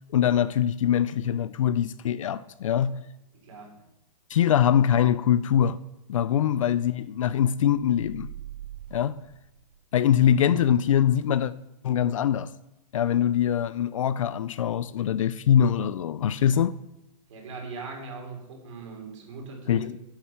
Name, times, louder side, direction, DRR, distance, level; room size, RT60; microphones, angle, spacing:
voice 1, 0.1-3.0 4.3-5.8 6.1-8.3 8.9-9.1 9.9-11.5 11.8-12.5 12.9-16.7 19.7-20.0, left 9 dB, 50° left, 0.4 m, -23 dB
voice 2, 3.3-3.8 17.3-19.9, right 4 dB, 45° right, 3.7 m, -40 dB
sound 1, 7.6-10.2, right 12 dB, 70° right, 0.7 m, -43 dB
9.6 x 8.9 x 5.7 m
hypercardioid pair, 170°, 21 cm